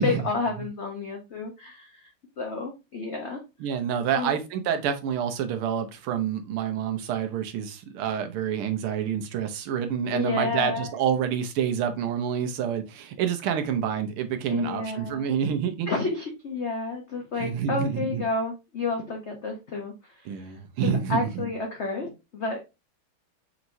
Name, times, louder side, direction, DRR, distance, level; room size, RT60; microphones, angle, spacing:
voice 1, 0.0-2.1 2.4-3.4 4.1-4.4 10.1-10.9 14.5-15.3 15.9-20.5 20.8-22.6, left 3 dB, 75° left, 0.6 m, -30 dB
voice 2, 3.6-15.9 17.4-18.2 20.3-21.5, right 8 dB, 90° right, 1.7 m, -28 dB
5.8 x 3.0 x 2.6 m
omnidirectional pair, 2.3 m